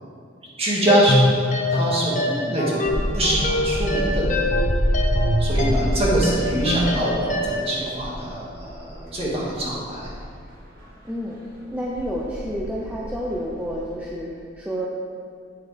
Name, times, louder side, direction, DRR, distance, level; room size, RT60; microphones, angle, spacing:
voice 1, 0.6-2.2 2.5-4.5 5.4-10.1, right 1 dB, 30° right, -5 dB, 2.0 m, -24 dB
sound 1, 0.9-7.7, left 1 dB, 40° left, 0.8 m, -24 dB
voice 2, 2.2-2.6 5.5-6.0 6.3-7.0 11.0-11.4 11.7-14.9, equal, 10° right, -5 dB, 0.7 m, -31 dB
sound 2, 2.8-10.9 11.5-14.0, equal, 50° right, 1.9 m, -28 dB
9.1 x 7.9 x 3.5 m, 2.4 s
head